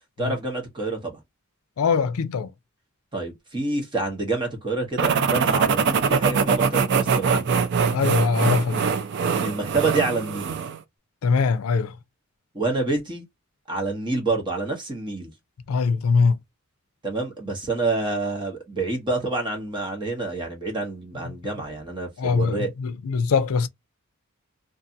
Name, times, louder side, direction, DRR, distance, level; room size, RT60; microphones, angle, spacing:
voice 1, 0.2-1.2 3.1-7.6 9.4-10.6 12.5-13.3 13.7-15.3 17.0-22.7, right 3 dB, 20° right, 0.9 m, -27 dB
voice 2, 1.8-2.5 7.9-8.8 11.2-11.9 15.7-16.4 22.2-23.7, left 5 dB, 90° left, 0.4 m, -22 dB
sound 1, 5.0-10.8, right 5 dB, 55° right, 0.4 m, -23 dB
2.6 x 2.4 x 2.6 m
head